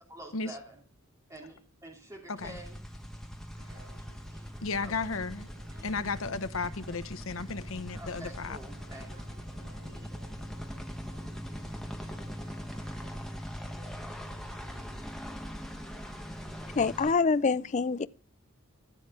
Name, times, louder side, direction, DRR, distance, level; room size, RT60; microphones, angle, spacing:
voice 1, 0.1-0.8 1.3-2.8 3.3-3.4 4.0-4.1 4.3-4.5 4.8-5.2 5.8-5.9 7.9-9.1, right 1 dB, 15° right, 2.8 m, -48 dB
voice 2, 2.3-2.6 4.6-5.5 5.8-8.6, left 4 dB, 65° left, 0.9 m, -34 dB
sound 1, 2.4-17.1, equal, ahead, 1.1 m, -41 dB
sound 2, 3.6-16.8, right 1 dB, 55° right, 6.7 m, -56 dB
voice 3, 16.8-18.1, left 4 dB, 35° left, 0.4 m, -26 dB
14.5 x 7.6 x 3.7 m
head